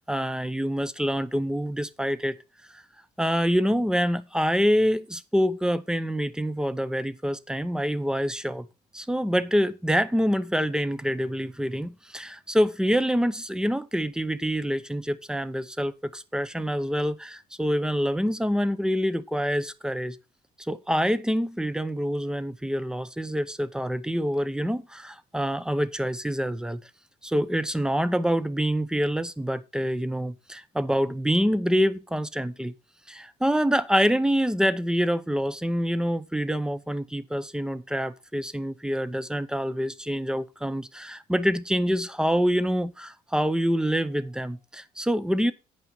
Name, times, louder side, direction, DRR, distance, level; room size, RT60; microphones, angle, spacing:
voice 1, 0.1-2.4 2.7-2.8 3.2-8.7 8.9-20.2 20.6-26.8 27.2-32.7 33.1-45.5, equal, 5° right, 0.6 m, -26 dB
8.8 x 5.6 x 5.3 m
cardioid pair, 110°, 17 cm